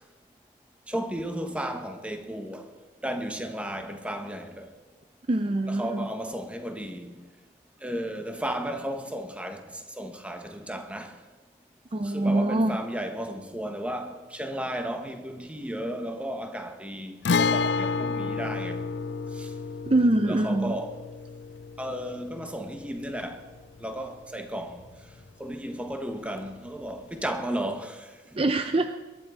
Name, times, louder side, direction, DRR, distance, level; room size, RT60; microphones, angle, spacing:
voice 1, 0.9-2.7 3.0-4.7 5.7-7.2 7.8-11.2 12.0-18.9 19.3-19.5 20.3-21.0 21.8-23.5 23.8-24.8 25.4-28.5, right 1 dB, 5° right, 1.1 m, -34 dB
voice 2, 5.3-6.1 11.9-12.8 19.9-20.7 28.4-29.0, right 2 dB, 30° right, 0.5 m, -24 dB
Guitar, 17.2-24.9 25.1-25.2 27.2-27.4, left 4 dB, 65° left, 0.5 m, -30 dB
22.0 x 11.5 x 4.8 m
head